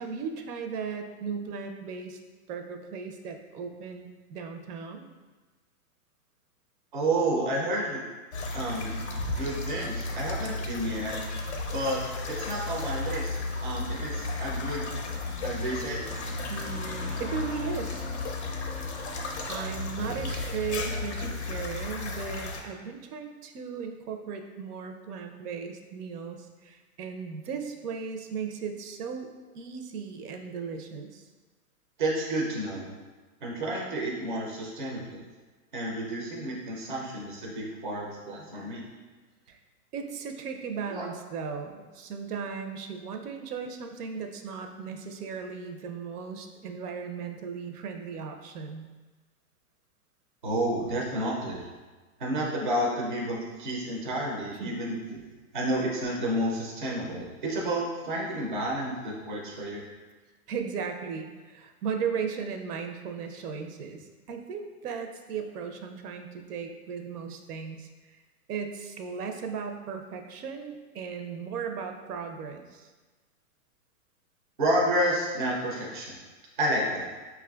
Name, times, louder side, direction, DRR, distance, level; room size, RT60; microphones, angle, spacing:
voice 1, 0.0-2.2 2.5-5.1 16.5-18.1 19.0-29.3 29.5-31.3 39.5-39.6 39.9-48.8 54.6-54.8 60.5-68.2 68.5-72.9, right 6 dB, 85° right, 5 dB, 0.6 m, -36 dB
voice 2, 6.9-8.0 8.5-9.0 9.4-11.1 11.7-14.9 15.4-16.1 32.0-32.9 33.4-35.2 35.7-38.9 40.9-41.1 50.4-51.6 52.2-55.2 55.5-59.8 74.6-76.2 76.6-77.1, right 1 dB, 35° right, -3 dB, 0.4 m, -30 dB
sound 1, 8.3-22.6, left 2 dB, 50° left, 0.4 m, -34 dB
5.5 x 2.4 x 2.2 m, 1.3 s
hypercardioid pair, 175°, 44 cm